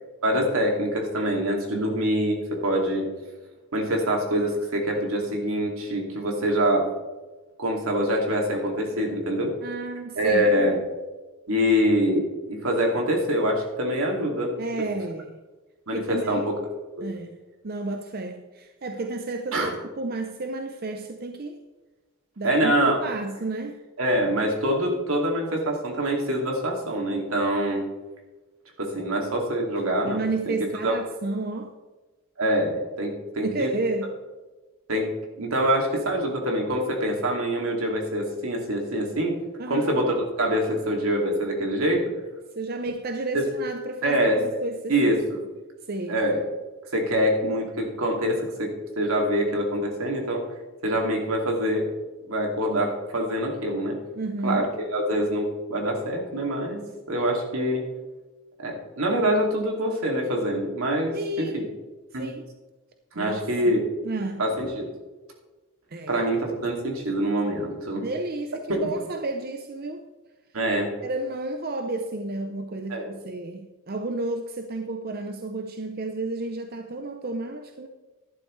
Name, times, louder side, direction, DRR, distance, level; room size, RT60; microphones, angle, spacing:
voice 1, 0.2-3.1 3.7-6.8 7.6-9.5 10.2-10.7 11.5-14.5 15.9-16.5 17.0-17.1 19.5-19.7 22.4-23.0 24.0-27.8 28.8-30.5 30.8-30.9 32.4-33.7 34.9-35.0 35.4-39.4 39.7-42.0 43.3-43.4 44.0-44.4 44.9-45.4 46.1-46.4 46.9-48.7 49.0-50.4 50.8-51.9 52.3-54.0 54.4-54.7 54.9-56.8 57.1-57.8 58.6-61.6 62.1-62.3 63.1-63.8 64.4-64.8 66.1-68.1 68.7-68.8 70.5-70.9 72.9-73.1, equal, 85° right, 0 dB, 2.5 m, -25 dB
voice 2, 9.6-10.4 14.6-15.4 15.9-16.5 17.0-17.4 17.6-19.7 20.0-21.6 22.4-23.8 30.0-31.7 33.4-34.1 39.6-39.9 42.5-45.2 45.9-46.2 54.1-54.7 61.1-61.6 62.2-62.5 63.2-63.8 64.0-64.5 65.9-66.2 68.0-70.0 71.0-77.9, right 2 dB, 45° right, 6 dB, 0.7 m, -31 dB
12.0 x 11.5 x 3.3 m, 1.2 s
head